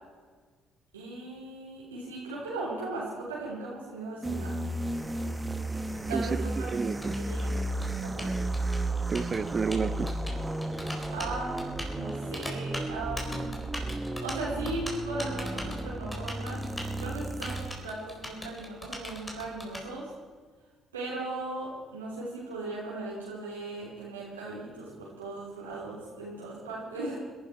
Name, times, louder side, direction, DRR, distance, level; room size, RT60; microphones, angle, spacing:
voice 1, 0.9-4.5 6.1-6.7 7.2-7.6 8.0-8.3 11.1-13.5 14.2-16.6 17.0-20.1 20.9-27.1, right 2 dB, 90° right, -7 dB, 3.1 m, -37 dB
sound 1, 4.2-17.9, right 1 dB, 15° right, 1.3 m, -33 dB
Typing, 5.0-19.8, left 1 dB, 15° left, 3.8 m, -41 dB
voice 2, 6.1-7.2 9.1-10.1, right 5 dB, 40° right, 15 dB, 0.8 m, -30 dB
25.0 x 11.5 x 4.6 m, 1.5 s
hypercardioid pair, 50°, 0 cm